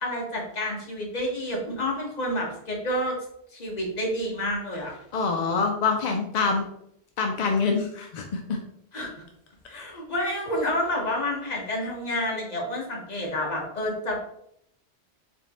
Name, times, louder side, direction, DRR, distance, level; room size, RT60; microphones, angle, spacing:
voice 1, 0.0-3.2 3.5-4.9 8.9-9.2 9.7-14.3, left 1 dB, 40° left, -1 dB, 1.0 m, -29 dB
voice 2, 5.1-6.7 7.2-8.6, left 4 dB, 60° left, 2 dB, 0.4 m, -25 dB
4.3 x 3.0 x 2.9 m, 0.73 s
omnidirectional pair, 1.2 m